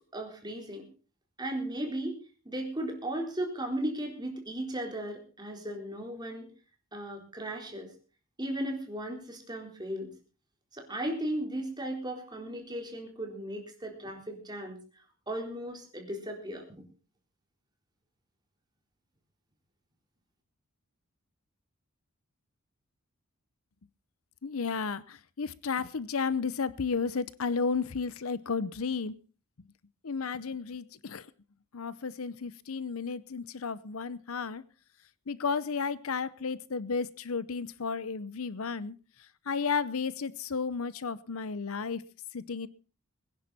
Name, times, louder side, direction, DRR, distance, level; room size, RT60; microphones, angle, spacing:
voice 1, 0.1-0.8 1.4-2.2 2.4-6.5 6.9-7.9 8.4-10.1 10.7-14.8 15.3-16.8, right 1 dB, 20° right, 1 dB, 4.0 m, -36 dB
voice 2, 24.4-29.2 30.0-31.3 31.7-34.6 35.3-39.0 39.5-42.0 42.3-42.7, left 5 dB, 70° left, 18 dB, 0.7 m, -33 dB
22.0 x 10.5 x 4.2 m, 0.36 s
head